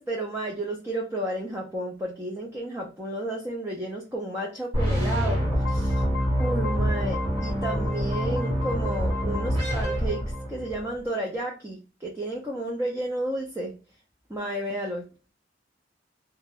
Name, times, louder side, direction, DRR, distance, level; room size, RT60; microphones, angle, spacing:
voice 1, 0.0-6.0 6.4-13.7 14.3-15.1, right 1 dB, 15° right, -2 dB, 0.5 m, -32 dB
sound 1, 4.7-10.9, equal, 30° right, 1.2 m, -26 dB
2.2 x 2.0 x 3.1 m, 0.33 s
head